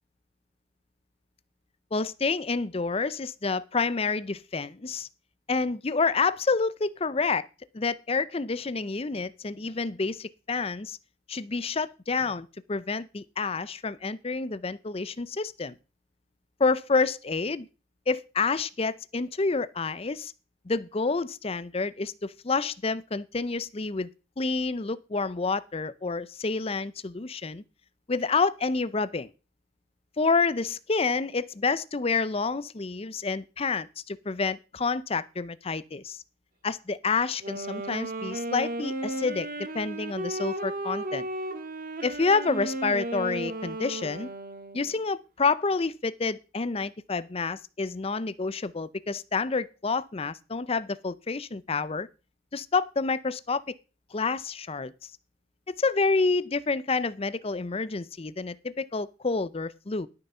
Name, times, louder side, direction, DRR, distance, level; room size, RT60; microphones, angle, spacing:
voice 1, 1.9-5.1 5.5-7.5 7.7-11.0 11.3-15.7 16.6-17.7 18.1-20.3 20.7-24.1 24.4-27.6 28.1-29.3 30.2-36.2 36.6-39.5 39.7-41.3 42.0-44.3 44.7-52.1 52.5-53.7 54.1-55.1 55.7-60.1, left 4 dB, 30° left, 0.6 m, -28 dB
Wind instrument woodwind instrument, 37.3-45.0, right 2 dB, 45° right, 1.8 m, -34 dB
12.0 x 6.8 x 5.5 m
head